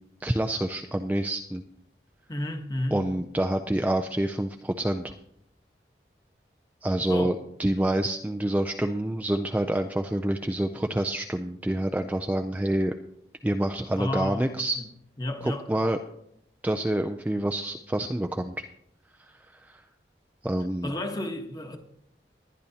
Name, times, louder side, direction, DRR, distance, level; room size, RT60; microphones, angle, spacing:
voice 1, 0.2-1.6 2.9-5.1 6.8-12.9 13.4-14.8 15.4-16.0 16.6-18.5 19.2-19.8 20.4-20.9, right 1 dB, 10° right, 0.3 m, -27 dB
voice 2, 2.3-3.1 7.1-7.3 13.9-14.6 15.2-15.7 20.8-21.8, left 1 dB, 20° left, 1.2 m, -32 dB
19.0 x 10.5 x 2.8 m
head